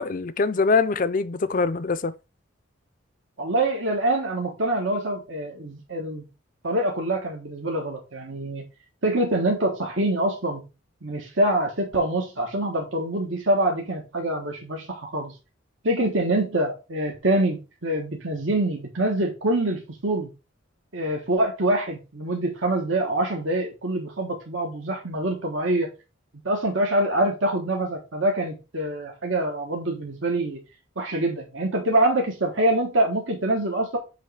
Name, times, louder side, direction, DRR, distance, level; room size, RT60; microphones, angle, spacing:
voice 1, 0.0-2.1, left 4 dB, 40° left, 0.5 m, -23 dB
voice 2, 3.4-6.3 6.6-8.6 9.0-10.6 11.0-15.3 15.8-20.3 20.9-25.9 26.4-30.6 31.0-34.0, right 1 dB, 75° right, 1.4 m, -25 dB
7.5 x 3.1 x 4.9 m
head